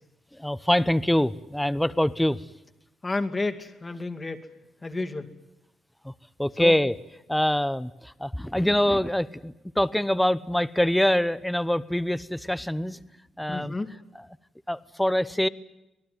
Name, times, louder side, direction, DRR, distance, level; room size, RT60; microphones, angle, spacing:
voice 1, 0.4-2.4 6.0-6.1 6.4-6.9 7.3-13.0 13.4-13.7 14.7-15.5, left 1 dB, 5° left, 16 dB, 0.9 m, -24 dB
voice 2, 3.0-4.5 4.8-5.3 6.6-6.8 13.5-13.9, left 2 dB, 25° left, 6 dB, 2.4 m, -31 dB
26.0 x 18.5 x 9.5 m, 0.93 s
cardioid pair, 90°, 0 cm